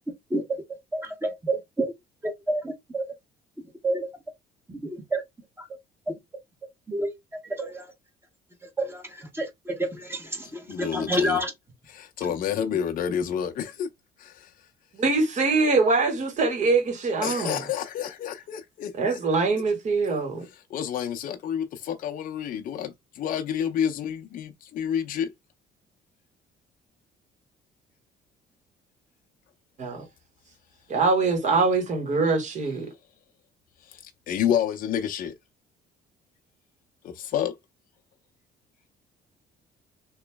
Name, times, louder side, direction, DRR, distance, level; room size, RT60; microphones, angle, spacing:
voice 1, 0.9-1.9 2.5-3.0 3.8-4.1 4.7-5.2 6.9-7.1 7.6-7.8 8.8-11.5 12.6-12.7, right 1 dB, 15° right, 1.3 m, -29 dB
voice 2, 10.4-11.4 11.9-13.9 14.2-14.5 17.2-19.2 20.1-20.2 20.5-25.3 33.8-35.3 37.0-37.6, left 9 dB, 55° left, 0.6 m, -29 dB
voice 3, 14.9-17.6 19.0-20.5 29.8-30.0 30.9-32.9, right 3 dB, 45° right, 1.8 m, -23 dB
3.0 x 3.0 x 3.4 m
cardioid pair, 110°, 17 cm